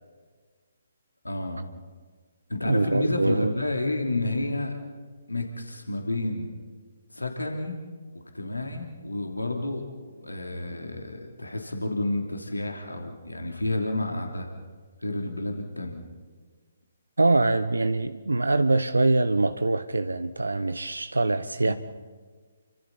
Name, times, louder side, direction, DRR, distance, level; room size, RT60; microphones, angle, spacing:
voice 1, 1.2-1.6 2.5-4.7 5.3-6.5 7.1-7.8 8.1-9.8 10.2-14.5 15.0-16.1 21.6-21.7, left 2 dB, 85° left, 2 dB, 3.1 m, -30 dB
voice 2, 2.6-3.5 17.2-21.7, right 2 dB, 80° right, 11 dB, 0.8 m, -24 dB
29.5 x 25.0 x 4.2 m, 1.5 s
figure-of-eight pair, 135°, 0 cm